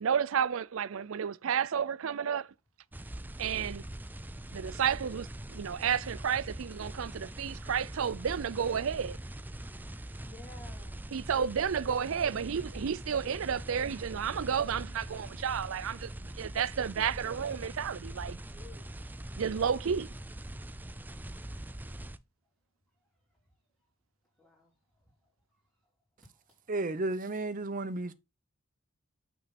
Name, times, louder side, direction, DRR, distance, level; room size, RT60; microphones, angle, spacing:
voice 1, 0.0-2.5 3.4-3.8 4.5-9.2 11.1-18.4 19.4-20.1, right 7 dB, 70° right, 0.4 m, -31 dB
sound 1, 2.9-22.2, right 1 dB, 10° right, 0.4 m, -43 dB
voice 2, 10.2-11.1 18.5-18.9 21.3-22.1 24.4-24.7, left 3 dB, 10° left, 3.3 m, -55 dB
voice 3, 26.7-28.1, right 2 dB, 40° right, 0.8 m, -33 dB
7.2 x 6.0 x 4.2 m
head